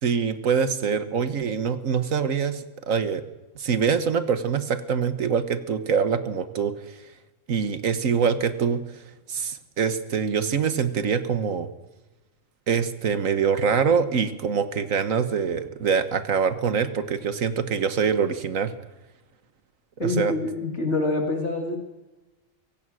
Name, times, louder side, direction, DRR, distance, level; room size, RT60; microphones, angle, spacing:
voice 1, 0.0-3.2 3.5-6.7 7.5-8.8 9.3-11.7 12.7-18.7 20.0-20.3, right 6 dB, 75° right, 11 dB, 1.7 m, -24 dB
voice 2, 20.0-21.8, left 2 dB, 55° left, 2 dB, 2.7 m, -26 dB
24.5 x 16.5 x 6.4 m, 1.1 s
omnidirectional pair, 1.4 m